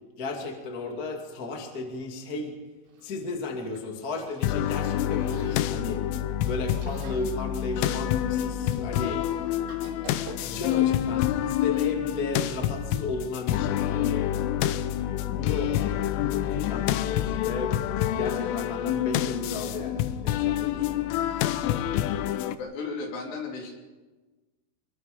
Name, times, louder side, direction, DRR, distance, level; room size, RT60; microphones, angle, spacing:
voice 1, 0.2-2.6 3.0-6.0 6.4-9.2 10.4-14.3 15.3-15.8 16.2-21.1, left 3 dB, 30° left, 2 dB, 1.7 m, -34 dB
Chewing mastication, 2.9-10.8, right 3 dB, 85° right, 5.4 m, -51 dB
sound 1, 4.4-22.6, left 12 dB, 90° left, 3.4 m, -27 dB
voice 2, 22.6-23.8, left 4 dB, 60° left, 1 dB, 4.9 m, -34 dB
25.0 x 22.0 x 5.4 m, 1.2 s
omnidirectional pair, 5.6 m